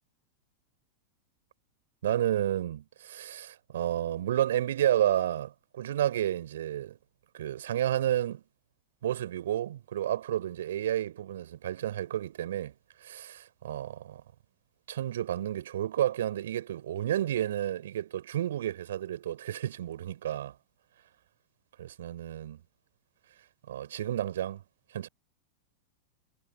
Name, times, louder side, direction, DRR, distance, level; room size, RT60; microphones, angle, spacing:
voice 1, 2.0-7.0 7.3-8.4 9.0-12.7 13.0-14.2 14.9-20.5 21.8-22.6 23.7-24.6 24.9-25.1, right 11 dB, 60° right, 5.0 m, -31 dB
figure-of-eight pair, 90°, 0 cm